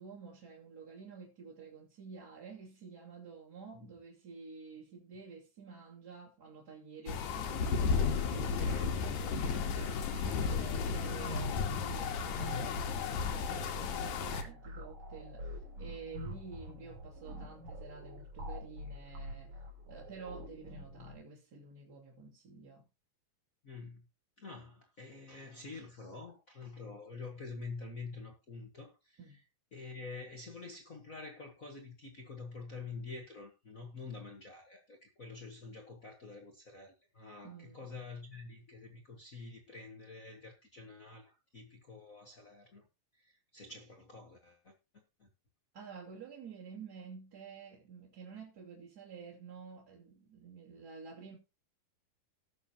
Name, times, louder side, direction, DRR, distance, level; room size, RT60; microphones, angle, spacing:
voice 1, 0.0-19.5 19.9-22.9 29.2-29.4 37.4-37.8 45.7-51.4, right 5 dB, 30° right, 2.6 m, -50 dB
sound 1, 7.1-14.4, left 5 dB, 65° left, 2.4 m, -33 dB
sound 2, 7.5-21.1, equal, 55° right, 4.6 m, -47 dB
voice 2, 23.6-24.1 24.4-29.4 29.7-42.8 43.1-45.3, left 4 dB, 85° left, 0.7 m, -47 dB
18.5 x 6.8 x 2.9 m
omnidirectional pair, 4.1 m